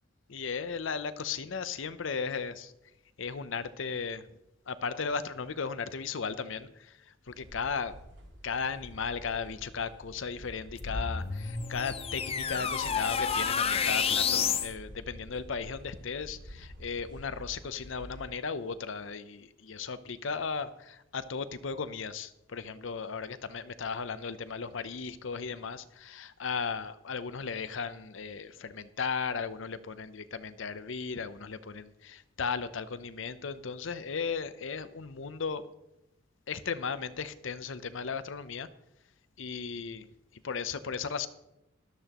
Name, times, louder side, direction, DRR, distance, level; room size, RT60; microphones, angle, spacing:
voice 1, 0.3-2.7 3.2-4.3 4.7-7.0 7.3-7.9 8.4-35.6 36.5-38.7 39.4-40.1 40.3-41.3, left 5 dB, 70° left, 13 dB, 0.7 m, -36 dB
sound 1, 7.3-18.3, equal, 60° right, 2.3 m, -49 dB
sound 2, 10.8-14.7, left 6 dB, 30° left, 0.6 m, -30 dB
13.0 x 12.5 x 3.0 m, 0.88 s
head